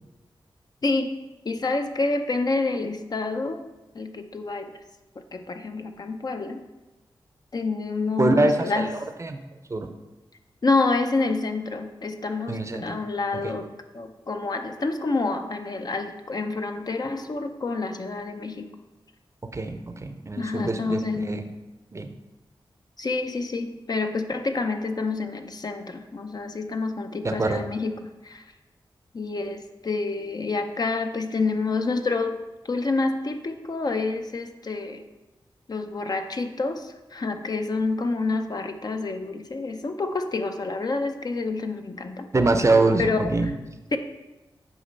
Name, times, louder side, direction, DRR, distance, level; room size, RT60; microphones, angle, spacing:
voice 1, 0.8-1.1 1.5-3.6 3.9-4.7 5.3-6.6 7.5-8.9 10.6-18.7 20.4-21.3 23.0-27.9 28.2-28.4 29.1-32.4 32.7-35.0 35.7-42.3 43.0-43.5 43.9-44.0, left 3 dB, 45° left, 6 dB, 0.5 m, -28 dB
voice 2, 8.2-9.4 9.7-9.9 12.5-13.0 13.4-13.5 19.4-21.4 21.9-22.1 27.2-27.6 42.3-43.5, right 2 dB, 35° right, 7 dB, 0.5 m, -24 dB
8.1 x 3.0 x 5.4 m, 1.1 s
wide cardioid pair, 80°, 9 cm